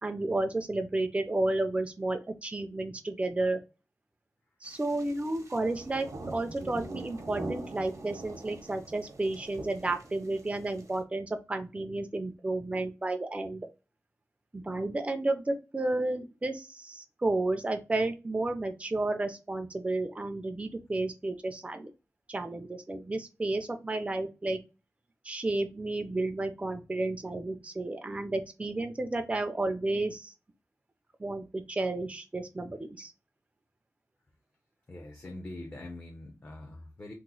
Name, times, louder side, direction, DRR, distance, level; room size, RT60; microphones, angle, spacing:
voice 1, 0.0-3.6 4.6-13.7 14.5-21.9 22.3-24.6 25.2-30.3 31.2-33.1, right 2 dB, 20° right, 0.4 m, -32 dB
sound 1, 4.6-11.0, right 2 dB, 65° right, 0.8 m, -43 dB
voice 2, 34.9-37.1, left 2 dB, 35° left, 0.6 m, -43 dB
3.0 x 2.0 x 3.8 m
wide cardioid pair, 110°, 6 cm